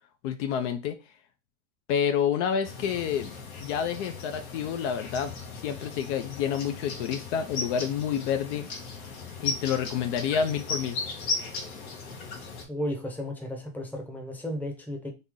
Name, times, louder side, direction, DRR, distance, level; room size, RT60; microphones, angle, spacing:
voice 1, 0.2-1.0 1.9-3.3 3.6-8.7 9.4-11.0, left 8 dB, 55° left, 0.7 m, -29 dB
sound 1, 2.6-12.7, left 3 dB, 90° left, 1.3 m, -37 dB
voice 2, 12.7-15.1, left 1 dB, 5° left, 0.8 m, -34 dB
3.3 x 2.7 x 3.7 m
hypercardioid pair, 115°, 42 cm